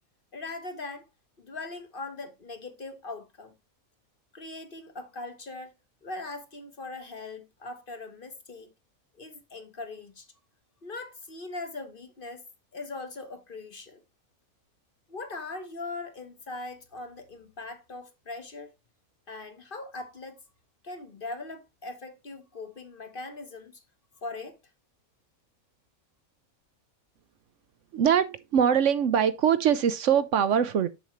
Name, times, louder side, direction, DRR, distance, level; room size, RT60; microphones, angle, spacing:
voice 1, 0.3-1.1 1.4-3.5 4.3-5.7 6.0-8.7 9.2-10.3 10.8-12.4 12.7-14.0 15.1-18.7 19.3-20.4 20.8-23.8 24.2-24.6, left 3 dB, 40° left, 1.2 m, -40 dB
voice 2, 27.9-30.9, right 8 dB, 65° right, 1.0 m, -23 dB
7.3 x 7.0 x 3.1 m
omnidirectional pair, 1.5 m